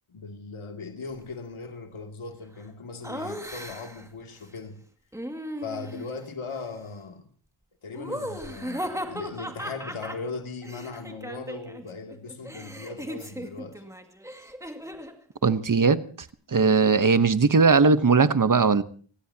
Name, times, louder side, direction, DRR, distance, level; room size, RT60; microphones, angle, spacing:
voice 1, 0.1-4.8 5.6-7.3 7.8-13.8, left 4 dB, 70° left, 2.6 m, -38 dB
Laughter, 3.0-4.1 5.1-6.1 7.9-11.8 12.1-15.2, equal, 5° right, 2.2 m, -37 dB
voice 2, 15.4-16.0 16.5-18.8, right 4 dB, 40° right, 1.1 m, -19 dB
30.0 x 16.0 x 2.9 m
cardioid pair, 65°, 50 cm